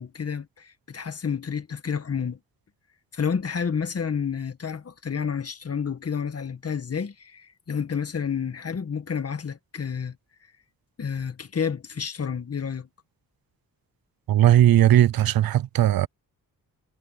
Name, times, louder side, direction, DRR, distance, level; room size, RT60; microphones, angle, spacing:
voice 1, 0.0-2.4 3.1-10.2 11.0-12.9, left 6 dB, 45° left, 1.7 m, -30 dB
voice 2, 14.3-16.1, right 12 dB, 80° right, 0.7 m, -18 dB
cardioid pair, 90°, 35 cm